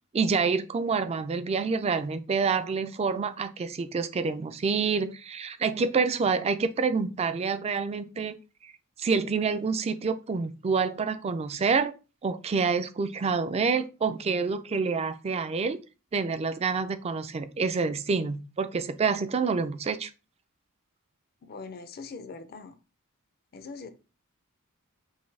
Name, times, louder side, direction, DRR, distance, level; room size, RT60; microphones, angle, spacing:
voice 1, 0.1-8.3 8.6-8.7 9.0-11.9 12.2-15.8 16.1-20.1, right 5 dB, 30° right, 0.3 m, -27 dB
voice 2, 21.4-22.8 23.5-23.9, left 4 dB, 45° left, 0.5 m, -42 dB
5.5 x 2.6 x 3.2 m
head